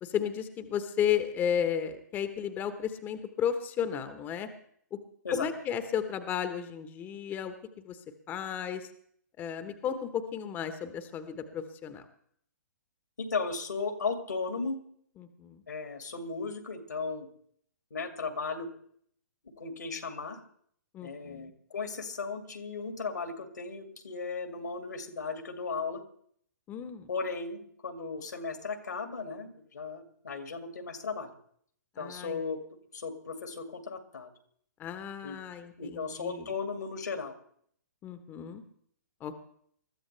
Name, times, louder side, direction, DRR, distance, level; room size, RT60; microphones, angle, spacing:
voice 1, 0.0-4.5 4.9-5.0 5.3-7.5 7.8-8.0 8.3-8.9 9.4-12.0 15.4-15.6 20.9-21.5 26.7-27.1 32.0-32.4 34.8-36.5 38.0-38.6 39.2-39.4, left 8 dB, 20° left, 10 dB, 1.1 m, -33 dB
voice 2, 13.2-14.8 15.7-17.3 17.9-18.7 19.6-20.4 21.0-26.0 27.1-31.3 32.0-32.6 32.9-34.3 35.2-35.4 35.8-37.3, left 4 dB, 75° left, 6 dB, 2.3 m, -36 dB
21.0 x 14.0 x 3.3 m, 0.65 s
figure-of-eight pair, 125°, 10 cm